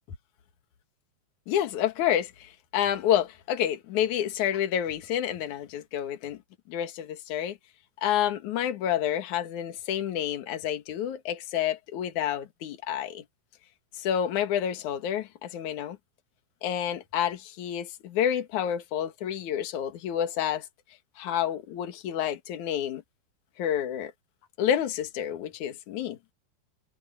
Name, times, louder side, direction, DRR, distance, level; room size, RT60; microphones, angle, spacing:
voice 1, 1.5-6.4 6.7-7.6 8.0-13.2 13.9-16.0 16.6-20.7 21.2-23.0 23.6-24.1 24.6-26.2, left 10 dB, 55° left, 2.9 m, -29 dB
omnidirectional pair, 4.4 m